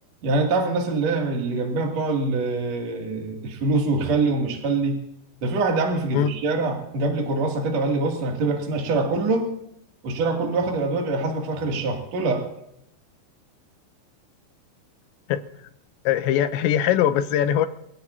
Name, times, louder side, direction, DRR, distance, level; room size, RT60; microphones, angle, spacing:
voice 1, 0.2-5.0 5.4-9.5 10.0-12.4, right 3 dB, 40° right, 1 dB, 3.2 m, -24 dB
voice 2, 16.1-17.7, left 10 dB, 80° left, 11 dB, 3.0 m, -21 dB
25.5 x 16.5 x 2.8 m, 0.78 s
omnidirectional pair, 5.3 m